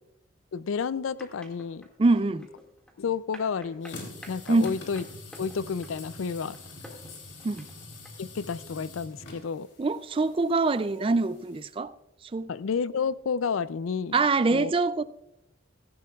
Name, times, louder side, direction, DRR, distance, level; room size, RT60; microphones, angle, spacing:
voice 1, 0.5-1.9 3.0-5.0 5.4-6.6 8.2-9.7 12.5-14.2 14.5-14.7, left 6 dB, 85° left, 0.4 m, -31 dB
sound 1, 1.2-8.1, equal, 5° left, 2.0 m, -50 dB
voice 2, 2.0-2.5 4.5-4.8 7.4-7.7 9.8-11.9 12.3-12.5 14.1-15.0, right 3 dB, 25° right, 0.3 m, -24 dB
sound 2, 3.8-11.7, left 2 dB, 60° left, 3.1 m, -46 dB
17.0 x 15.0 x 2.4 m
head